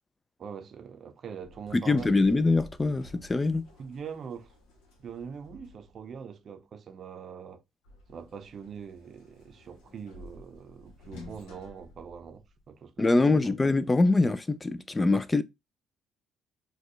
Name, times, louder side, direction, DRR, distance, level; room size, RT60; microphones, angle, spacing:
voice 1, 0.4-2.3 3.8-4.5 5.0-7.6 8.1-13.6, right 7 dB, 55° right, 0.5 m, -43 dB
Sliding door, 1.4-6.3 7.8-12.8, left 2 dB, 85° left, 1.0 m, -52 dB
voice 2, 1.7-3.6 13.0-15.4, left 3 dB, 20° left, 0.3 m, -24 dB
4.2 x 2.3 x 3.1 m
supercardioid pair, 75°, 0 cm